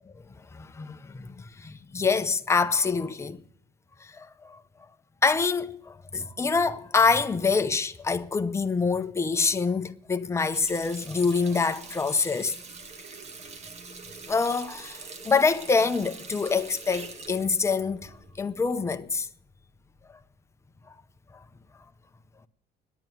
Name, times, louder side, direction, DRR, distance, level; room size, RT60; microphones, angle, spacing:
voice 1, 0.5-3.4 4.0-4.6 5.2-12.6 14.3-19.3, left 4 dB, 15° left, 0.7 m, -26 dB
Water tap faucet, 10.3-18.8, right 4 dB, 40° right, 2.0 m, -44 dB
10.5 x 9.1 x 9.3 m
cardioid pair, 110°, 17 cm